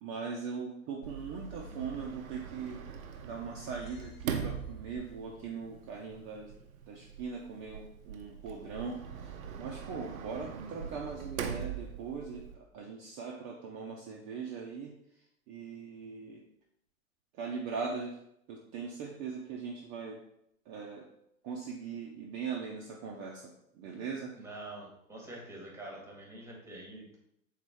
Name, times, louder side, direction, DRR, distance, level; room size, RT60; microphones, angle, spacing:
voice 1, 0.0-2.8 3.2-6.5 6.9-14.9 15.5-16.4 17.3-18.2 18.5-20.2 20.7-21.0 21.4-24.3, right 5 dB, 35° right, -2 dB, 0.6 m, -40 dB
Sliding door, 1.0-12.5, right 7 dB, 75° right, 0.7 m, -42 dB
sound 1, 3.0-5.2, left 7 dB, 30° left, 0.4 m, -57 dB
voice 2, 24.4-27.2, right 1 dB, 5° right, -1 dB, 1.0 m, -46 dB
3.6 x 3.2 x 3.4 m, 0.76 s
figure-of-eight pair, 100°, 42 cm